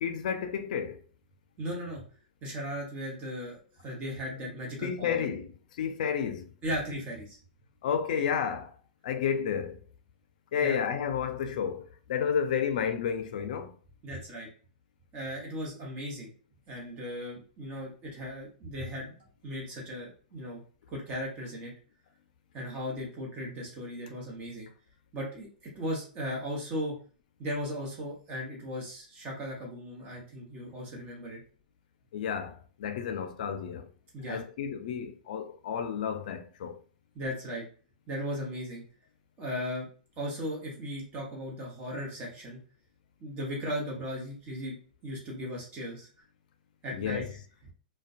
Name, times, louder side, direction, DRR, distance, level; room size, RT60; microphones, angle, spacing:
voice 1, 0.0-1.0 4.8-5.5 5.8-6.5 7.8-8.7 9.0-9.8 10.5-13.7 32.1-33.9 34.3-36.8 46.9-47.3, left 7 dB, 65° left, 0.4 m, -31 dB
voice 2, 1.6-2.0 2.4-5.3 6.6-7.4 10.6-10.8 14.0-14.5 15.1-16.3 16.7-19.1 19.4-20.6 20.9-21.7 22.5-24.7 25.1-26.9 27.4-31.4 34.1-34.4 37.1-37.6 38.1-38.8 39.4-39.9 40.2-42.6 43.2-44.8 45.0-46.1 46.8-47.2, equal, 30° right, 1.0 m, -37 dB
2.4 x 2.1 x 2.4 m
hypercardioid pair, 140°, 5 cm